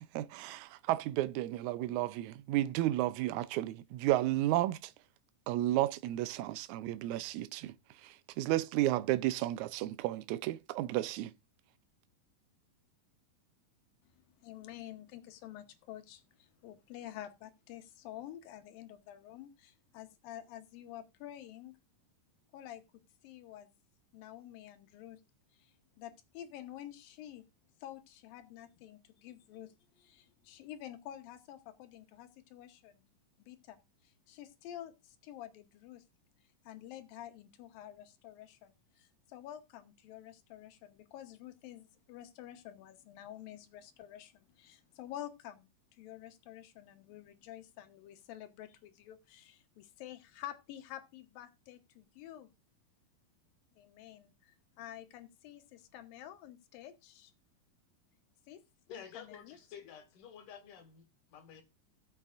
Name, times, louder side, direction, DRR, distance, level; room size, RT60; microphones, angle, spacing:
voice 1, 0.1-4.8 5.5-7.7 8.4-11.3, right 15 dB, 80° right, 1.8 m, -32 dB
voice 2, 14.0-21.7 22.5-23.7 24.1-25.2 25.5-27.5 27.8-33.1 33.4-36.0 36.6-52.5 53.7-57.3 58.5-58.6 58.9-59.6, left 12 dB, 90° left, 2.8 m, -49 dB
voice 3, 58.9-61.6, left 7 dB, 70° left, 3.0 m, -51 dB
17.5 x 7.3 x 2.5 m
omnidirectional pair, 4.0 m